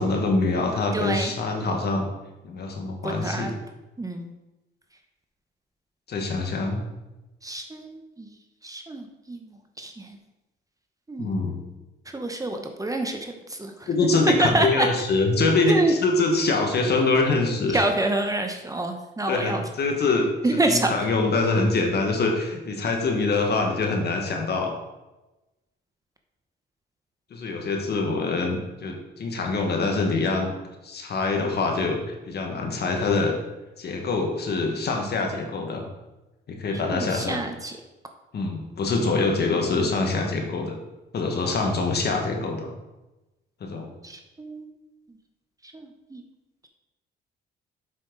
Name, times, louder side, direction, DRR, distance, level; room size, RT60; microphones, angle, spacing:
voice 1, 0.0-2.1 2.4-3.5 6.1-6.8 11.2-11.6 13.9-17.8 19.3-24.7 27.3-30.5 30.8-33.3 33.8-35.8 36.5-37.4 38.3-40.8 41.1-42.7 43.6-43.9, left 3 dB, 55° left, 2 dB, 1.6 m, -24 dB
voice 2, 0.9-1.3 3.0-3.5 4.0-4.3 7.4-8.3 8.6-9.4 9.8-10.1 11.1-11.3 12.1-13.9 14.4-14.9 15.7-15.9 17.7-19.6 20.4-20.9 36.9-37.7 44.0-44.7 45.7-46.2, right 2 dB, 15° right, 4 dB, 0.9 m, -27 dB
7.5 x 5.9 x 3.9 m, 1.0 s
cardioid pair, 90°, 20 cm